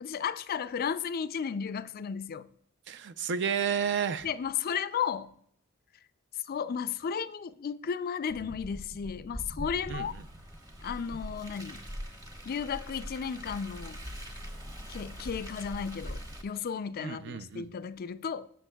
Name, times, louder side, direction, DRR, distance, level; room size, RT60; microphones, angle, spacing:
voice 1, 0.0-2.5 4.2-5.3 6.5-10.1 10.8-11.8 12.5-14.0 14.9-18.5, left 7 dB, 45° left, 0.4 m, -34 dB
voice 2, 2.9-4.3 9.9-10.2 17.0-17.7, right 7 dB, 55° right, 0.5 m, -31 dB
Car, 8.3-16.4, equal, 20° right, 1.2 m, -42 dB
16.0 x 6.5 x 2.2 m
head